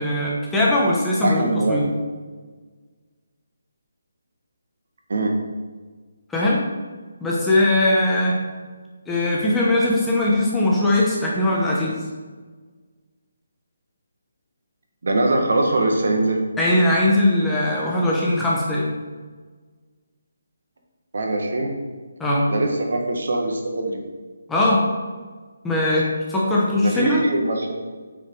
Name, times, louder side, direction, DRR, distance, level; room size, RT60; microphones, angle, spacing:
voice 1, 0.0-1.4 1.7-1.9 6.3-6.6 7.2-8.3 9.1-12.0 16.6-18.9 22.2-22.5 24.5-24.8 25.6-27.2, left 1 dB, 5° left, -6 dB, 0.9 m, -20 dB
voice 2, 1.2-1.9 5.1-5.3 15.0-16.4 21.1-21.7 22.5-24.0 26.8-27.7, right 2 dB, 65° right, 2 dB, 1.7 m, -22 dB
9.1 x 4.9 x 4.7 m, 1.4 s
hypercardioid pair, 170°, 0 cm